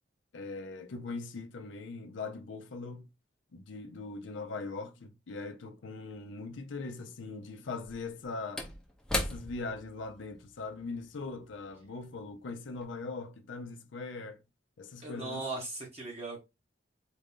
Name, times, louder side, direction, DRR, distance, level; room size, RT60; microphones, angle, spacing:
voice 1, 0.3-3.1 3.5-8.7 9.1-14.4 14.8-15.4, left 3 dB, 80° left, 0.5 m, -41 dB
Slam / Wood, 6.1-6.2 7.7-12.4 12.7-12.8, left 1 dB, 5° left, 0.7 m, -39 dB
voice 2, 15.0-16.4, right 2 dB, 35° right, 1.0 m, -38 dB
4.2 x 2.6 x 3.5 m
head